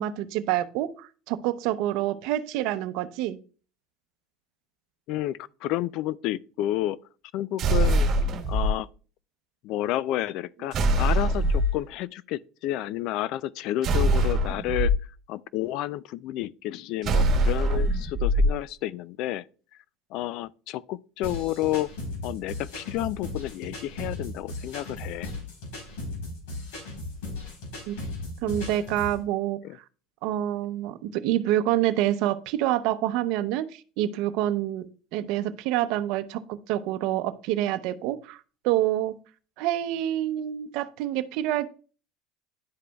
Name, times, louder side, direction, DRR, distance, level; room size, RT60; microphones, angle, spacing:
voice 1, 0.0-3.4 27.9-28.0 28.4-29.6 30.2-34.8 35.1-36.4 36.7-39.1 39.6-41.7, right 13 dB, 65° right, 0.7 m, -27 dB
voice 2, 5.1-7.0 7.3-8.1 8.5-8.9 9.6-14.9 15.3-19.4 20.1-21.9 22.2-25.3 29.6-29.8, left 14 dB, 60° left, 0.3 m, -30 dB
sound 1, 7.6-8.7 10.7-11.8 13.8-14.9 17.0-18.5, right 1 dB, 45° right, 1.5 m, -22 dB
sound 2, 21.2-29.2, left 2 dB, 80° left, 3.7 m, -36 dB
11.0 x 5.0 x 2.3 m
supercardioid pair, 125°, 0 cm